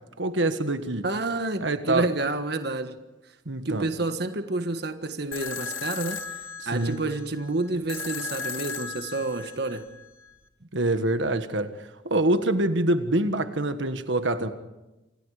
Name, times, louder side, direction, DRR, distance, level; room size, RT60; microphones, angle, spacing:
voice 1, 0.2-1.0 1.6-2.1 3.4-3.9 6.6-7.0 10.7-11.7 12.0-14.5, right 2 dB, 70° right, 9 dB, 1.6 m, -25 dB
voice 2, 1.0-2.9 3.6-9.8, right 2 dB, 55° right, 8 dB, 1.6 m, -29 dB
sound 1, 5.3-10.3, left 5 dB, 85° left, 2.3 m, -36 dB
29.0 x 27.0 x 5.0 m, 1.0 s
head